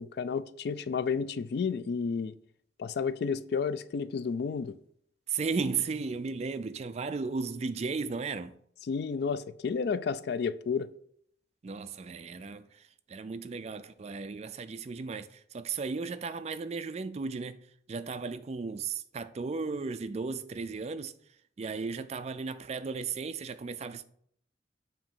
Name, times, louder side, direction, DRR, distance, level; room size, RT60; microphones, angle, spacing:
voice 1, 0.0-2.3 2.8-4.8 8.9-10.9, left 5 dB, 60° left, 0.3 m, -31 dB
voice 2, 5.3-8.6 11.6-17.6 17.9-21.1 21.6-24.1, right 4 dB, 35° right, 0.4 m, -35 dB
7.1 x 2.9 x 5.5 m
head